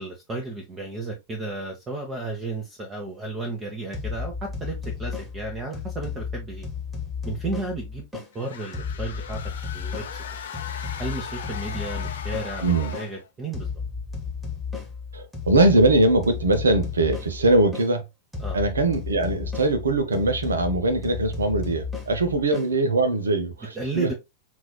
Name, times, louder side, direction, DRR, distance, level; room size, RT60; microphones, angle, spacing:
voice 1, 0.0-4.3 4.6-6.7 7.2-8.1 8.3-9.4 9.7-10.0 11.0-13.7 18.4-18.6 23.8-24.1, right 3 dB, 20° right, 0.9 m, -33 dB
sound 1, 3.9-8.3 8.7-13.1 13.5-17.9 18.3-22.7, left 5 dB, 5° right, 1.5 m, -34 dB
sound 2, 8.3-13.3, left 7 dB, 65° left, 0.6 m, -38 dB
voice 2, 12.6-12.9 15.1-18.0 18.5-24.1, right 2 dB, 70° right, 0.8 m, -21 dB
6.0 x 2.6 x 2.2 m
figure-of-eight pair, 90°, 0 cm